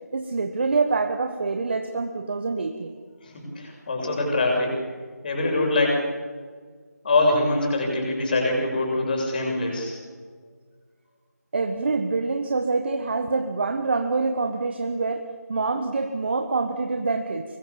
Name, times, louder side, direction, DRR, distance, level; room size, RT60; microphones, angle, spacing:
voice 1, 0.1-2.9 11.5-17.4, right 3 dB, 35° right, 7 dB, 1.5 m, -26 dB
voice 2, 3.2-4.7 5.2-6.0 7.0-10.0, left 2 dB, 30° left, 1 dB, 7.4 m, -24 dB
25.0 x 22.0 x 7.2 m, 1.5 s
figure-of-eight pair, 165°, 9 cm